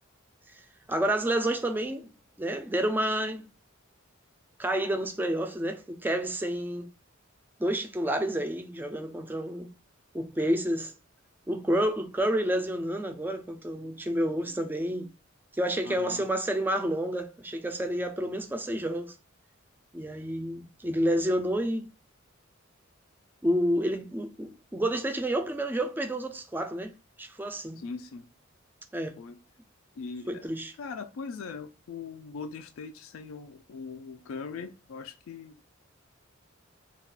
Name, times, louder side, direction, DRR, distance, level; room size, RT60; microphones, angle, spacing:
voice 1, 0.9-2.1 2.4-3.4 4.6-6.9 7.6-9.7 10.1-10.9 11.5-15.1 15.6-19.1 19.9-21.9 23.4-26.9 27.2-27.8 28.9-29.2 30.3-30.7, right 1 dB, 10° right, 0.3 m, -29 dB
voice 2, 15.9-16.2 27.8-28.2 29.2-29.4 30.0-30.5 30.8-35.6, left 5 dB, 80° left, 0.3 m, -40 dB
2.3 x 2.3 x 3.5 m
head